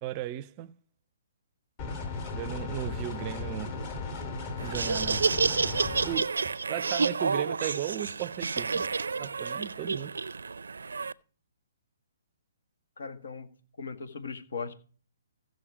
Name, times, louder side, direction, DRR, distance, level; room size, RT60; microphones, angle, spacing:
voice 1, 0.0-0.8 2.3-3.8 4.6-5.3 6.0-8.9 9.2-10.2, right 13 dB, 30° right, 0.5 m, -36 dB
sound 1, 1.8-6.2, left 3 dB, 35° left, 2.9 m, -36 dB
Laughter, 4.6-11.1, right 4 dB, 85° right, 0.4 m, -30 dB
voice 2, 13.0-13.5 13.8-14.7, left 5 dB, 70° left, 1.8 m, -38 dB
16.0 x 6.5 x 5.0 m
hypercardioid pair, 145°, 0 cm